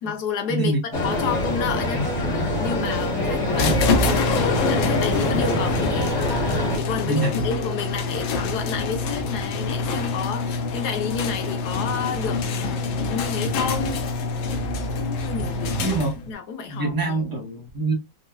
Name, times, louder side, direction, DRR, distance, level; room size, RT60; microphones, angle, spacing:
voice 1, 0.0-2.1 2.6-3.8 4.1-6.2 6.7-14.0 14.9-15.8 16.3-17.4, left 6 dB, 60° left, 1.2 m, -30 dB
sound 1, 0.9-6.8, left 1 dB, 40° left, 1.9 m, -25 dB
sound 2, 3.5-16.3, left 3 dB, 90° left, 1.6 m, -26 dB
voice 2, 7.0-7.6 15.4-16.1 16.7-17.9, right 3 dB, 15° right, 1.0 m, -25 dB
4.2 x 2.6 x 2.2 m
omnidirectional pair, 2.2 m